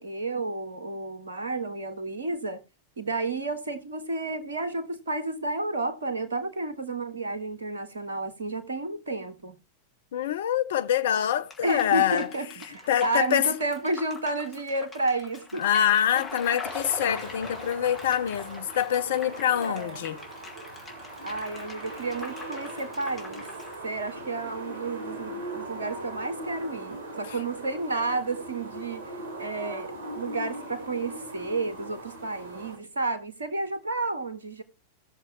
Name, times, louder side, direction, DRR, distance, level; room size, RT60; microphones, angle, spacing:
voice 1, 0.0-2.6 3.0-9.6 11.6-15.7 16.1-16.4 19.5-20.0 21.2-23.5 23.8-29.0 29.4-34.6, right 2 dB, 70° right, 1.6 m, -31 dB
voice 2, 10.1-12.3 12.9-13.5 15.6-20.2, left 10 dB, 60° left, 0.6 m, -25 dB
sound 1, 11.5-23.8, left 4 dB, 20° left, 2.7 m, -43 dB
sound 2, 16.6-32.8, right 2 dB, 90° left, 3.9 m, -40 dB
17.5 x 6.9 x 3.0 m
figure-of-eight pair, 90°, 0 cm